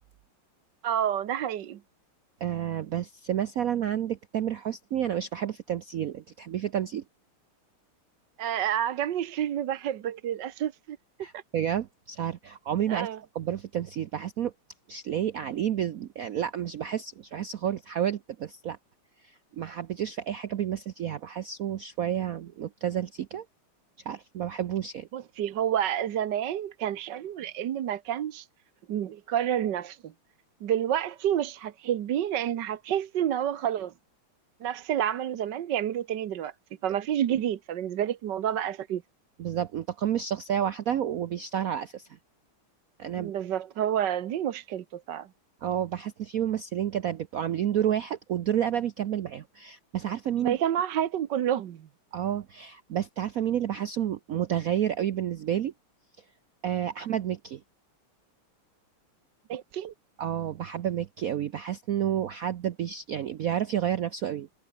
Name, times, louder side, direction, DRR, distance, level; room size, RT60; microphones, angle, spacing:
voice 1, 0.8-1.8 8.4-11.0 11.3-11.4 12.9-13.2 25.1-28.5 28.9-30.1 30.6-33.9 34.6-36.5 36.8-39.0 43.2-45.3 50.4-51.9 59.5-59.9, right 10 dB, 60° right, 1.5 m, -29 dB
voice 2, 2.4-7.0 11.2-13.1 13.3-14.5 14.9-18.8 19.2-23.4 24.0-25.1 39.4-42.1 43.0-43.4 45.6-50.6 52.1-55.7 56.6-57.6 60.2-64.5, right 10 dB, 80° right, 0.7 m, -30 dB
omnidirectional pair, 2.4 m